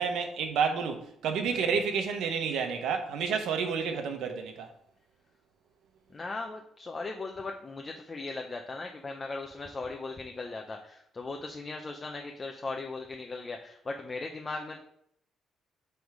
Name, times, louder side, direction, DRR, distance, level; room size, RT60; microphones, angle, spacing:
voice 1, 0.0-4.7, right 6 dB, 80° right, 1.0 m, -30 dB
voice 2, 1.5-1.8 6.1-14.8, left 3 dB, 30° left, 0.7 m, -38 dB
8.1 x 3.5 x 4.8 m
cardioid pair, 90°, 0 cm